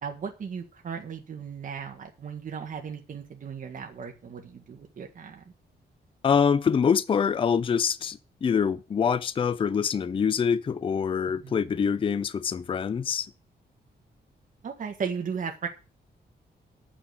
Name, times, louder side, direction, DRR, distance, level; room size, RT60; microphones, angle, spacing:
voice 1, 0.0-5.5 11.4-11.6 14.6-15.7, right 6 dB, 50° right, 1.6 m, -36 dB
voice 2, 6.2-13.3, left 7 dB, 30° left, 0.5 m, -25 dB
9.8 x 6.1 x 8.0 m
wide cardioid pair, 160°, 18 cm